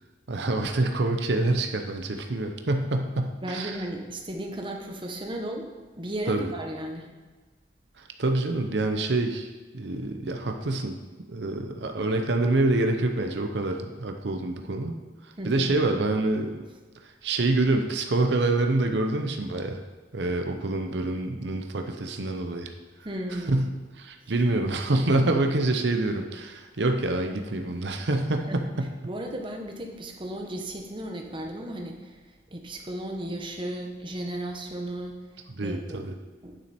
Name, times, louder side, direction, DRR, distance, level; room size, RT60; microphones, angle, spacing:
voice 1, 0.3-3.8 6.3-6.5 8.0-9.5 9.7-11.0 11.3-14.9 15.4-16.6 17.0-19.8 20.1-22.7 23.5-23.7 24.0-28.9 35.5-36.1, right 2 dB, 65° right, 5 dB, 0.7 m, -26 dB
voice 2, 3.4-5.7 6.0-7.1 15.4-15.7 23.0-23.6 28.3-28.6 29.0-32.2 32.5-35.1 35.6-36.0 36.4-36.6, right 1 dB, 25° right, 2 dB, 1.1 m, -35 dB
9.3 x 7.3 x 4.3 m, 1.3 s
head